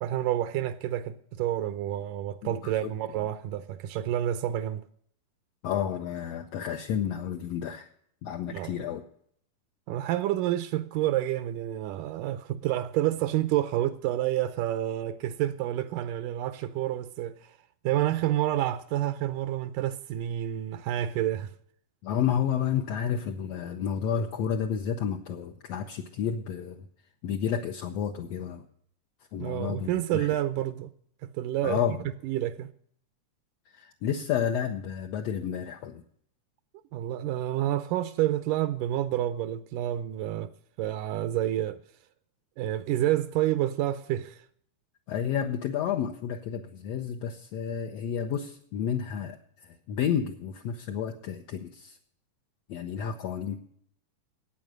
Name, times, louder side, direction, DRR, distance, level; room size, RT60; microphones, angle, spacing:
voice 1, 0.0-4.8 8.5-8.7 9.9-17.5 17.8-21.5 29.4-30.9 31.2-31.8 32.2-32.7 36.9-40.5 40.8-41.8 42.6-44.4, right 13 dB, 80° right, 2.1 m, -29 dB
voice 2, 2.4-2.9 5.6-7.9 8.2-9.0 22.0-26.9 27.2-28.6 29.3-30.3 31.6-32.0 33.7-36.0 45.1-52.0 52.7-53.6, left 8 dB, 70° left, 1.6 m, -31 dB
14.0 x 9.0 x 6.4 m
omnidirectional pair, 3.8 m